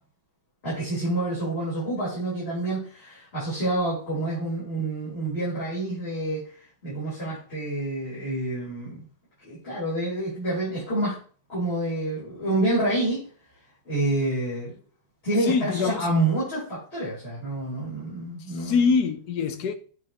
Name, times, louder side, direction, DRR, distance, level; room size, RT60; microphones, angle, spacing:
voice 1, 0.6-6.5 6.8-9.0 9.4-11.1 11.5-13.2 13.8-14.8 15.2-18.8, right 1 dB, 30° left, 4.4 m, -28 dB
voice 2, 15.4-16.1 18.5-19.7, left 5 dB, 65° left, 1.2 m, -24 dB
8.8 x 5.5 x 2.9 m
omnidirectional pair, 2.1 m